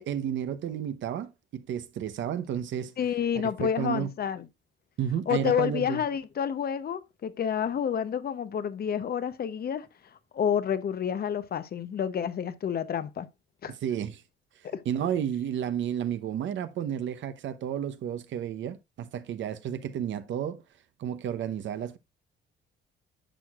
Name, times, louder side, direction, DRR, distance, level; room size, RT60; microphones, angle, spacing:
voice 1, 0.0-2.9 3.4-4.1 5.0-6.0 13.8-14.2 14.8-20.6 21.0-22.0, right 9 dB, 70° right, 0.8 m, -32 dB
voice 2, 3.0-4.5 5.3-9.9 10.3-13.3 13.6-13.7 14.6-14.8, left 8 dB, 50° left, 0.8 m, -29 dB
10.0 x 6.3 x 2.4 m
cardioid pair, 90°, 20 cm